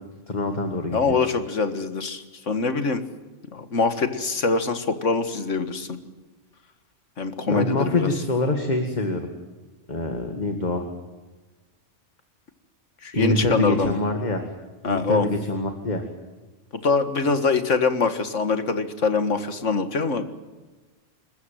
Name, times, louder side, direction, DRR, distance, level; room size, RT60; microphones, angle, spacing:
voice 1, 0.3-1.2 7.5-9.2 9.9-10.9 13.1-14.4 14.8-16.0, left 2 dB, 35° left, 5 dB, 2.1 m, -25 dB
voice 2, 0.9-3.0 3.5-6.0 7.2-8.1 13.0-14.0 14.8-15.3 16.7-20.3, left 4 dB, 80° left, 9 dB, 2.1 m, -24 dB
27.5 x 14.5 x 9.2 m, 1.2 s
omnidirectional pair, 1.2 m